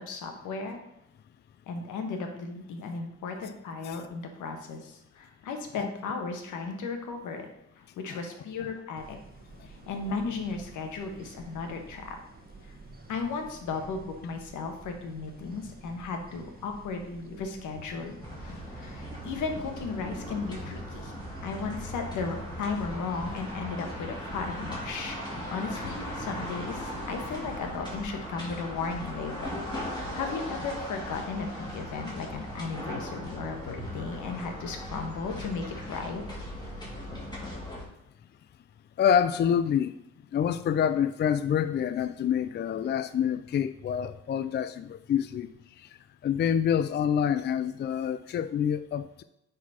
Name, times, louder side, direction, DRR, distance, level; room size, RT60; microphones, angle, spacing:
voice 1, 0.1-0.8 1.7-7.5 7.8-9.2 9.7-12.2 13.1-21.1 21.4-25.2 25.5-29.5 29.8-36.2, left 4 dB, 80° left, 4 dB, 1.4 m, -35 dB
sound 1, 9.0-23.6, right 4 dB, 30° right, 1.1 m, -49 dB
sound 2, 18.2-37.8, equal, 15° left, 2.6 m, -38 dB
voice 2, 39.0-39.9 40.3-45.5 45.8-45.9 46.2-49.2, left 8 dB, 35° left, 12 dB, 0.4 m, -27 dB
9.4 x 4.2 x 4.2 m, 0.83 s
cardioid pair, 90°, 30 cm